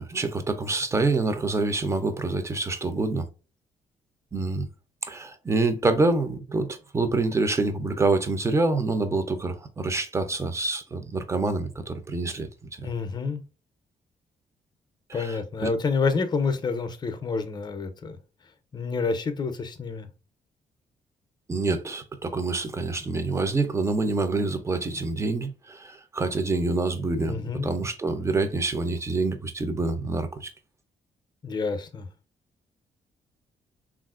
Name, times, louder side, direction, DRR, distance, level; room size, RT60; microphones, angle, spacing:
voice 1, 0.0-3.3 4.3-4.7 5.0-12.5 12.8-12.9 15.1-15.7 21.5-30.5, right 3 dB, 20° right, 0.5 m, -26 dB
voice 2, 12.8-13.4 15.1-18.2 18.7-20.1 27.3-27.7 31.4-32.1, left 4 dB, 35° left, 0.5 m, -28 dB
3.4 x 2.4 x 2.4 m
cardioid pair, 90°, 13 cm